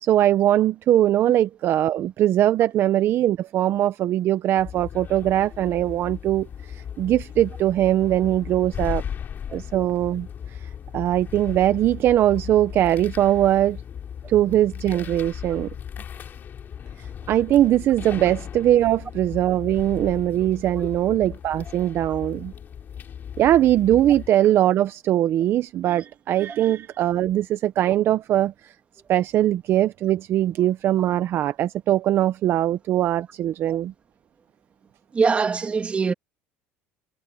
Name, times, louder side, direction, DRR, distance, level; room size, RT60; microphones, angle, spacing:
voice 1, 0.0-9.0 9.5-13.8 14.3-15.7 17.0-22.5 23.4-28.7 29.1-33.9, right 12 dB, 45° right, 0.8 m, -21 dB
sound 1, 4.6-24.3, left 8 dB, 35° left, 4.5 m, -37 dB
voice 2, 35.1-36.1, right 5 dB, 20° right, 2.9 m, -22 dB
cardioid pair, 130°, 5 cm